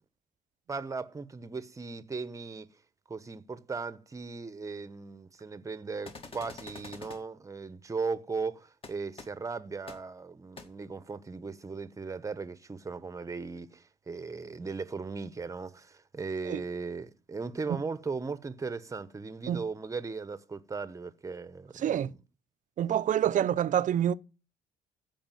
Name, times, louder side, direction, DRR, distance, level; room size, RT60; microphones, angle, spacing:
voice 1, 0.7-2.7 3.1-22.1, right 4 dB, 20° right, 1.0 m, -37 dB
sound 1, 6.0-7.2 8.8-8.9 9.2-9.3 9.9-10.0 10.6-10.7, left 3 dB, 35° left, 2.0 m, -45 dB
voice 2, 21.8-22.1 22.8-24.1, right 10 dB, 50° right, 0.6 m, -27 dB
15.0 x 5.1 x 9.2 m
cardioid pair, 110°, 17 cm